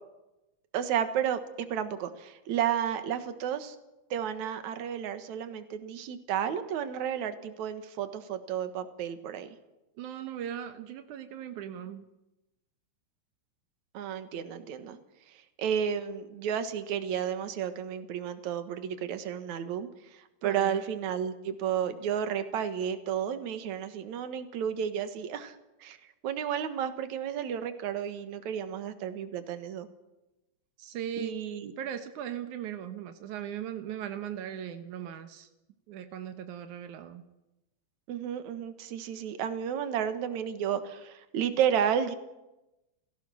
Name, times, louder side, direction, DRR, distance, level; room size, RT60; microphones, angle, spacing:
voice 1, 0.7-3.8 4.1-9.6 13.9-15.0 15.3-26.0 26.2-29.9 31.2-31.7 38.1-42.1, right 9 dB, 65° right, 10 dB, 1.9 m, -32 dB
voice 2, 10.0-12.0 20.4-20.8 30.8-31.4 31.8-35.5 35.9-37.2, right 9 dB, 90° right, 8 dB, 1.7 m, -38 dB
29.5 x 16.5 x 6.4 m, 0.97 s
omnidirectional pair, 5.3 m